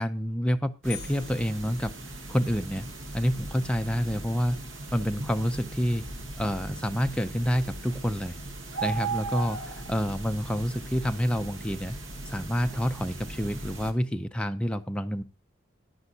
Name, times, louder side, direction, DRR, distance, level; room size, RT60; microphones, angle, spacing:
voice 1, 0.0-1.9 2.3-2.9 3.1-4.6 4.9-6.0 6.4-8.4 8.8-11.9 12.3-15.2, equal, 5° left, 6 dB, 0.5 m, -28 dB
sound 1, 0.8-13.9, right 3 dB, 80° right, 1.7 m, -38 dB
sound 2, 0.9-2.7, left 12 dB, 45° left, 1.8 m, -46 dB
14.0 x 11.0 x 2.8 m, 0.28 s
head